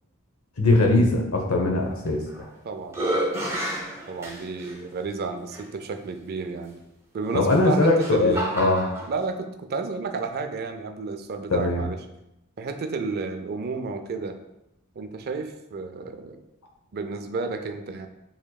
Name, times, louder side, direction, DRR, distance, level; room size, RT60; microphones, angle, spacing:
voice 1, 0.6-2.2 7.3-8.9 11.5-11.8, left 2 dB, 70° left, 2 dB, 0.9 m, -21 dB
sound 1, 2.1-2.5 2.9-4.7 5.5-5.6 7.4-9.1, right 1 dB, 15° right, 0.9 m, -30 dB
voice 2, 2.6-3.0 4.1-6.8 7.1-8.6 9.1-12.0 12.6-14.4 15.0-16.4 16.9-18.1, right 4 dB, 45° right, 7 dB, 0.4 m, -32 dB
7.1 x 3.0 x 2.3 m, 0.86 s
head